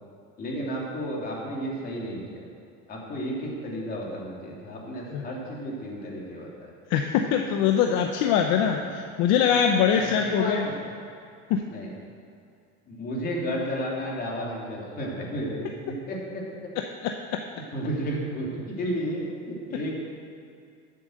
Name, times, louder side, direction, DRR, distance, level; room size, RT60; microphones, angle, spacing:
voice 1, 0.4-2.4 2.9-6.5 7.9-8.0 10.0-10.7 11.7-11.9 12.9-16.4 17.7-19.9, equal, 30° left, -3 dB, 3.2 m, -32 dB
voice 2, 6.9-10.7 11.5-11.6, left 8 dB, 60° left, 4 dB, 0.9 m, -23 dB
14.0 x 7.9 x 6.6 m, 2.4 s
cardioid pair, 145°, 30 cm